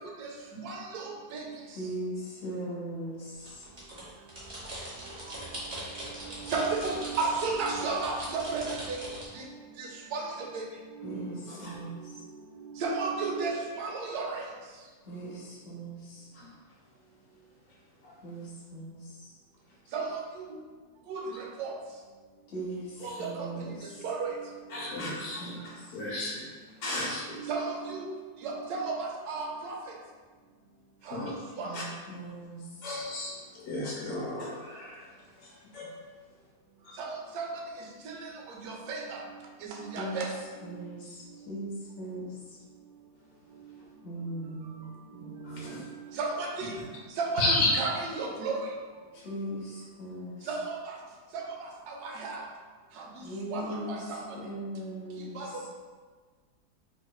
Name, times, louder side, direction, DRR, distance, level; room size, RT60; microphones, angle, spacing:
voice 1, 0.6-1.4 6.5-9.0 9.3-9.4 9.8-10.2 10.5-10.7 11.0-11.1 12.8-14.4 19.9-20.2 21.1-21.2 21.6-21.7 23.0-23.5 24.0-24.3 27.3-28.1 28.4-29.8 31.1-31.2 31.6-31.7 37.0-37.1 37.3-37.5 38.0-38.2 38.6-39.2 39.6-40.3 46.2-46.7 47.2-48.6 50.5-50.9 51.3-51.4 51.9-52.4 53.5-53.6 53.9-54.2 55.4-55.7, right 4 dB, 80° right, 0 dB, 1.1 m, -33 dB
voice 2, 1.8-3.6 11.0-12.0 15.1-16.2 18.2-19.0 22.5-22.9 23.2-23.7 25.0-25.7 31.6-32.6 39.9-40.3 40.6-41.2 41.4-42.3 44.0-44.9 45.2-45.6 49.1-50.5 53.2-54.0 54.3-55.4, right 1 dB, 45° left, -5 dB, 0.9 m, -39 dB
sound 1, 3.4-9.3, right 1 dB, 35° right, 0.8 m, -41 dB
voice 3, 24.7-26.4 26.8-27.4 31.1-31.3 31.7-31.8 32.8-33.3 33.6-35.0 35.7-35.9 36.9-37.0 45.4-45.9 47.4-47.8, left 2 dB, 70° left, -4 dB, 1.2 m, -32 dB
3.7 x 3.0 x 2.2 m, 1.4 s
omnidirectional pair, 1.7 m